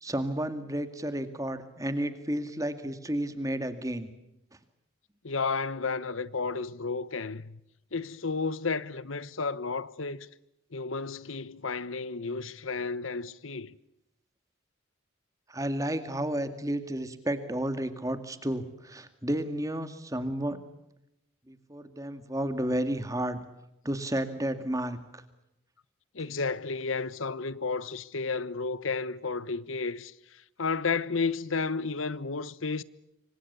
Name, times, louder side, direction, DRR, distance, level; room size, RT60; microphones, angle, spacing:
voice 1, 0.0-4.1 15.5-20.6 21.5-23.4 23.8-25.2, right 1 dB, 15° right, 2.1 m, -32 dB
voice 2, 5.2-7.6 7.9-10.3 10.7-13.8 26.1-32.8, left 4 dB, 85° left, 1.1 m, -32 dB
27.5 x 25.0 x 6.9 m
head